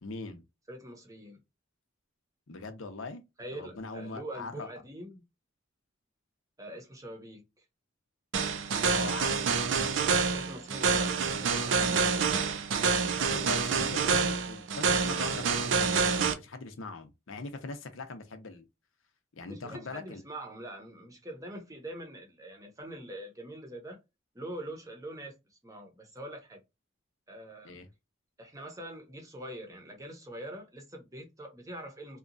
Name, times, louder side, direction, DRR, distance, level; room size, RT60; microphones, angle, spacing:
voice 1, 0.0-0.4 2.5-3.2 3.5-4.7 8.9-9.5 13.2-18.6 19.4-20.2 27.6-27.9, left 3 dB, 80° left, 0.6 m, -41 dB
voice 2, 0.7-1.4 3.4-5.2 6.6-7.6 10.0-12.3 19.5-24.0 24.3-26.6 27.3-27.8 28.4-32.2, right 1 dB, 15° right, 0.8 m, -44 dB
sound 1, 8.3-16.3, right 5 dB, 65° right, 0.5 m, -27 dB
2.8 x 2.3 x 2.5 m
head